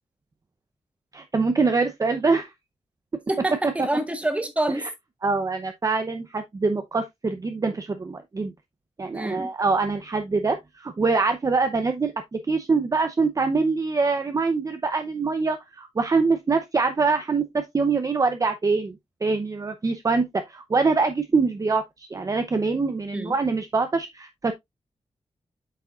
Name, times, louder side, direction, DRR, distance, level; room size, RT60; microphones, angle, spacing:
voice 1, 1.1-2.5 4.8-4.9 5.2-8.5 9.0-19.0 19.2-24.5, right 4 dB, 30° right, 0.7 m, -24 dB
voice 2, 3.3-4.9 9.1-9.5 23.1-23.4, right 1 dB, 10° right, 1.4 m, -27 dB
8.5 x 6.1 x 2.5 m
wide cardioid pair, 150°, 11 cm